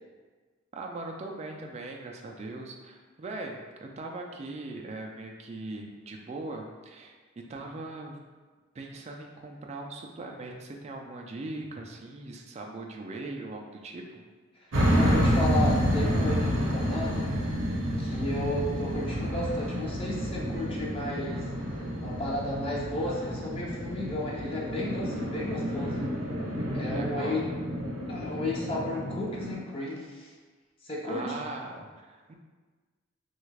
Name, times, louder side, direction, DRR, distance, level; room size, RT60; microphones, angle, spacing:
voice 1, 0.7-7.1 7.5-8.2 8.7-14.2 26.9-27.4 31.0-32.3, right 2 dB, 35° right, 1 dB, 0.3 m, -40 dB
voice 2, 14.5-17.3 18.0-21.5 22.0-26.1 26.7-27.5 28.1-30.3 30.8-31.4, left 1 dB, 30° left, -4 dB, 0.5 m, -33 dB
sound 1, 14.7-29.5, equal, 70° right, 0.7 m, -29 dB
3.4 x 2.3 x 3.2 m, 1.4 s
head